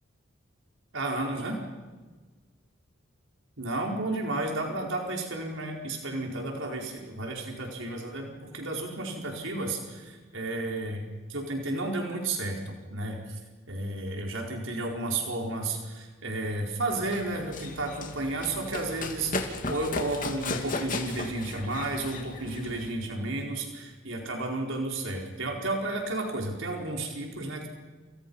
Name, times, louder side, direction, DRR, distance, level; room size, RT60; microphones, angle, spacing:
voice 1, 0.9-1.6 3.6-13.4 13.7-27.7, right 2 dB, 75° right, 1 dB, 4.7 m, -32 dB
Run, 16.9-22.9, left 2 dB, 40° left, 2.8 m, -36 dB
30.0 x 29.0 x 5.6 m, 1.4 s
head